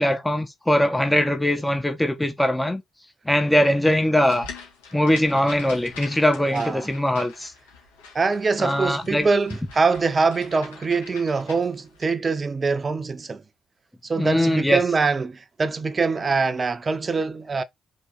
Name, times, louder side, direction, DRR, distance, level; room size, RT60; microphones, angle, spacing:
voice 1, 0.0-2.8 3.3-4.5 4.9-7.5 8.6-9.3 14.2-14.8, left 1 dB, 10° left, 1.3 m, -21 dB
sound 1, 4.2-12.1, left 4 dB, 90° left, 1.9 m, -44 dB
voice 2, 6.5-6.9 8.1-13.4 14.0-17.6, right 4 dB, 40° right, 1.0 m, -23 dB
5.2 x 3.7 x 4.9 m
hypercardioid pair, 45°, 0 cm